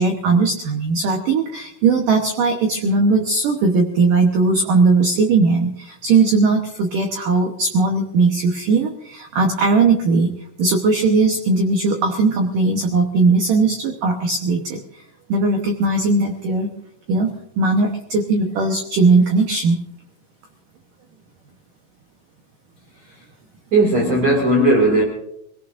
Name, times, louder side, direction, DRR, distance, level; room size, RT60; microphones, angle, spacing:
voice 1, 0.0-10.3 10.6-14.8 15.3-16.7 17.1-19.8, right 3 dB, 85° right, 3 dB, 1.8 m, -18 dB
voice 2, 23.7-25.0, right 1 dB, 45° right, 0 dB, 2.7 m, -16 dB
26.0 x 18.0 x 2.6 m, 0.76 s
omnidirectional pair, 5.7 m